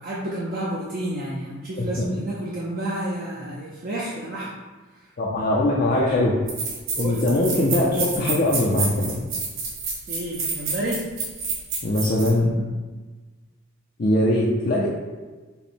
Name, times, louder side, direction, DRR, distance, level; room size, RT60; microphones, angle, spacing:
voice 1, 0.0-4.5 7.0-7.3 10.1-11.0, right 1 dB, 45° right, -6 dB, 0.5 m, -30 dB
voice 2, 5.2-6.3 7.0-9.2 11.8-12.5 14.0-14.9, left 1 dB, 40° left, -3 dB, 0.5 m, -21 dB
sound 1, 5.9-6.0 6.5-12.3, right 4 dB, 65° right, 1.2 m, -29 dB
5.5 x 2.1 x 4.3 m, 1.3 s
head